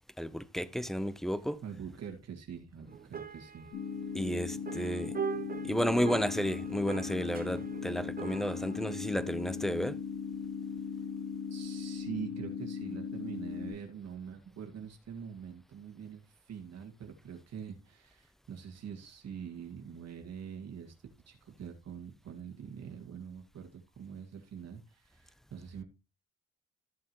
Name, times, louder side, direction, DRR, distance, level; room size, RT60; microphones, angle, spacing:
voice 1, 0.2-1.6 4.1-5.2 5.6-10.0, equal, ahead, 0.7 m, -32 dB
voice 2, 1.6-3.7 11.5-20.9 21.3-25.8, right 7 dB, 60° right, 2.0 m, -44 dB
sound 1, 2.9-9.8, right 7 dB, 30° right, 1.0 m, -43 dB
sound 2, 3.7-13.7, left 7 dB, 55° left, 6.8 m, -38 dB
14.0 x 7.3 x 3.1 m
cardioid pair, 90°, 30 cm